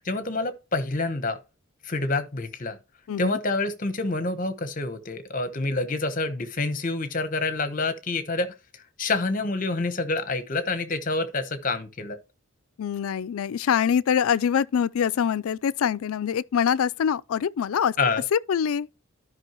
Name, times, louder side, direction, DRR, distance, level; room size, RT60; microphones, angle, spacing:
voice 1, 0.0-1.4 1.8-2.8 3.2-12.2 18.0-18.2, left 3 dB, 40° left, 0.9 m, -27 dB
voice 2, 12.8-18.0 18.3-18.9, left 8 dB, 80° left, 0.4 m, -24 dB
12.5 x 5.3 x 2.9 m
head